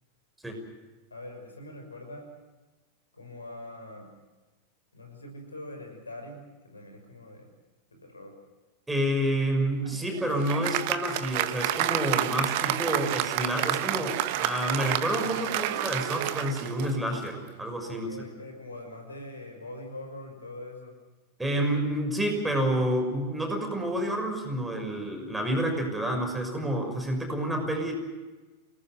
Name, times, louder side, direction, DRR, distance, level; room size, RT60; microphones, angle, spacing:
voice 1, 1.1-2.3 3.1-4.1 4.9-7.5 7.9-8.3 15.3-15.6 17.9-20.9, left 1 dB, 80° left, 4 dB, 6.0 m, -43 dB
voice 2, 8.9-18.1 21.4-27.9, right 1 dB, 5° right, 3 dB, 6.1 m, -29 dB
Applause, 9.9-17.4, right 13 dB, 50° right, 1.2 m, -30 dB
28.0 x 20.0 x 6.5 m, 1.2 s
figure-of-eight pair, 90°, 0 cm